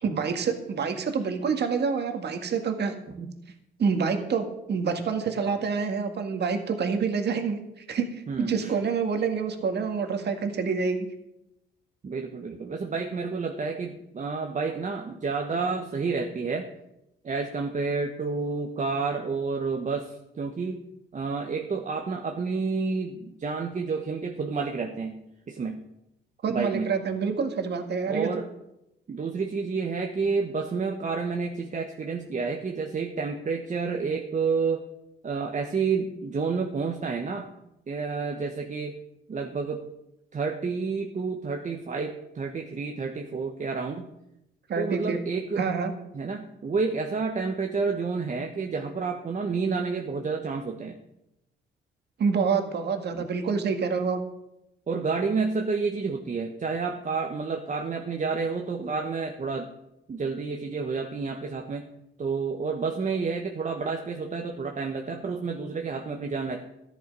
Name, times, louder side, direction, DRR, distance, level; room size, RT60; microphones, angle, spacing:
voice 1, 0.0-2.9 3.8-11.1 26.4-28.3 44.7-45.2 45.6-45.9 52.2-54.2, right 5 dB, 55° right, 6 dB, 2.0 m, -27 dB
voice 2, 8.3-8.7 12.0-16.7 17.2-20.8 21.1-25.2 25.5-25.8 26.5-26.9 28.1-28.5 29.1-34.8 35.2-37.5 37.9-38.9 39.3-39.8 40.3-44.1 44.8-45.6 46.1-50.9 53.2-53.3 54.9-59.7 60.1-61.8 62.2-66.6, right 4 dB, 40° right, 3 dB, 1.3 m, -30 dB
14.0 x 10.5 x 5.4 m, 0.87 s
cardioid pair, 90°, 20 cm